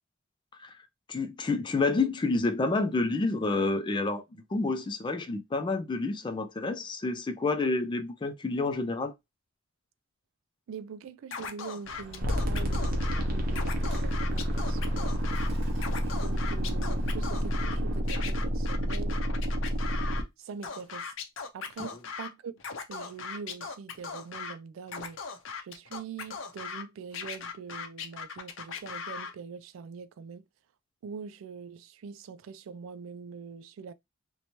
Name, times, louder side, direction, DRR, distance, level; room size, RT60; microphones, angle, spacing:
voice 1, 1.1-9.1, left 3 dB, 25° left, 0.3 m, -29 dB
voice 2, 10.7-15.1 16.2-19.2 20.4-21.1 21.5-22.6 22.9-25.2 25.6-30.4 31.0-33.9, right 6 dB, 85° right, 0.3 m, -43 dB
Scratching (performance technique), 11.3-13.2 13.5-15.5 15.8-17.8 18.1-20.2 20.6-22.3 22.6-24.5 24.9-26.8 27.1-29.3, left 5 dB, 75° left, 0.5 m, -38 dB
Bird, 11.8-18.0, equal, 70° right, 1.1 m, -44 dB
sound 1, 12.2-20.2, equal, 45° right, 0.7 m, -29 dB
2.7 x 2.2 x 2.9 m
head